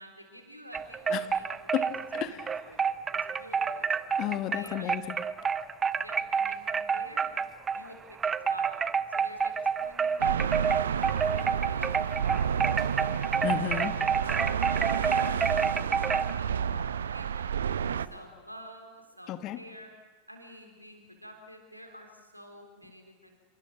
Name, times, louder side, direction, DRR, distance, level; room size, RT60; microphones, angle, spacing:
voice 1, 0.0-1.9 2.1-2.4 2.7-3.9 4.5-4.9 5.9-7.4 7.7-8.9 9.1-10.8 11.1-13.2 13.8-14.0 14.4-19.9 20.3-23.4, equal, 90° right, 3 dB, 3.9 m, -49 dB
sound 1, 0.7-7.9 8.2-16.3, right 6 dB, 20° right, 0.7 m, -29 dB
voice 2, 2.1-2.5 4.2-5.2 13.4-13.9 19.3-19.6, left 13 dB, 35° left, 10 dB, 1.5 m, -32 dB
sound 2, 10.2-18.1, right 8 dB, 65° right, 0.6 m, -30 dB
28.0 x 24.5 x 6.2 m, 1.3 s
figure-of-eight pair, 90°, 0 cm